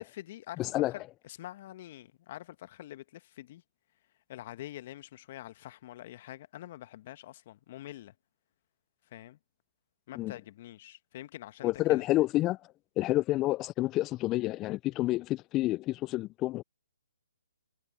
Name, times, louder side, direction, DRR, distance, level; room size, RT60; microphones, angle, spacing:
voice 1, 0.0-3.6 4.3-8.1 9.1-9.4 10.1-12.0, left 14 dB, 40° left, 1.7 m, -45 dB
voice 2, 0.6-0.9 10.2-10.3 11.6-12.6 13.0-16.6, left 17 dB, 20° left, 0.4 m, -29 dB
figure-of-eight pair, 140°, 0 cm